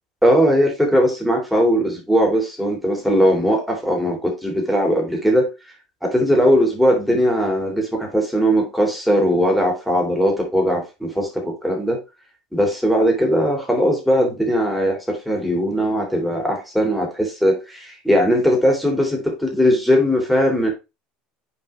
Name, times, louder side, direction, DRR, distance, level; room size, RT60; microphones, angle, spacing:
voice 1, 0.2-5.5 6.0-12.0 12.5-20.7, equal, ahead, 0 dB, 3.2 m, -19 dB
7.7 x 4.7 x 3.3 m, 0.26 s
supercardioid pair, 100°, 3 cm